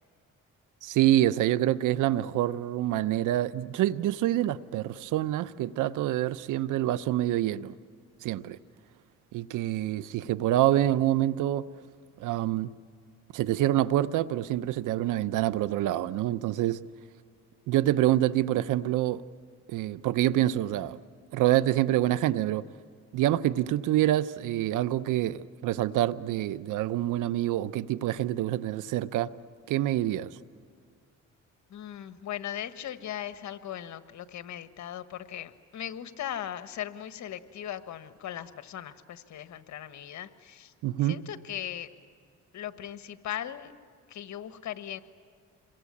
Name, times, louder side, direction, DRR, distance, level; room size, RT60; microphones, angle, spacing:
voice 1, 0.8-7.7 8.2-8.6 9.3-11.6 12.2-12.7 13.3-16.8 17.7-19.2 19.7-21.0 21.3-22.6 23.1-29.3 29.7-30.4 40.8-41.2, right 13 dB, 85° right, 0.8 m, -26 dB
voice 2, 31.7-40.7 41.0-41.9 42.5-43.7 44.1-45.0, left 11 dB, 70° left, 1.4 m, -38 dB
27.5 x 23.0 x 8.6 m
cardioid pair, 90°, 30 cm